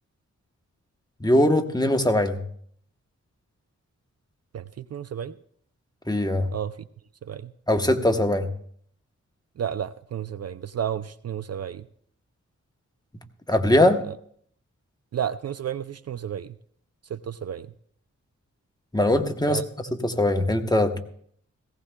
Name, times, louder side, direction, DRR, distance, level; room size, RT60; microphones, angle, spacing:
voice 1, 1.2-2.4 6.1-6.5 7.7-8.5 13.5-14.0 18.9-19.6 20.0-21.0, left 1 dB, 15° left, 5 dB, 1.0 m, -21 dB
voice 2, 4.5-5.4 6.5-6.9 7.2-7.5 9.6-11.9 14.0-14.2 15.1-16.5 17.1-17.7 19.5-19.6, right 9 dB, 55° right, 14 dB, 0.4 m, -32 dB
18.0 x 16.0 x 2.2 m, 0.62 s
wide cardioid pair, 75°, 30 cm